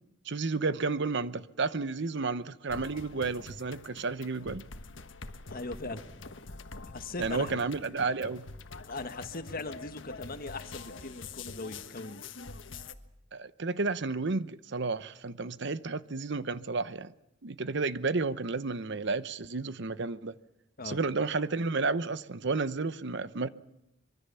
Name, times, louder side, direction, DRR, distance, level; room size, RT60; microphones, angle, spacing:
voice 1, 0.3-4.6 7.2-8.4 13.3-17.1 17.4-20.3 20.8-23.5, right 3 dB, 65° right, 0.9 m, -32 dB
sound 1, 2.7-12.9, left 3 dB, 70° left, 1.5 m, -45 dB
voice 2, 5.5-6.0 6.9-7.5 8.9-12.2 20.8-21.0, left 3 dB, 50° left, 1.6 m, -39 dB
24.5 x 23.0 x 7.0 m
head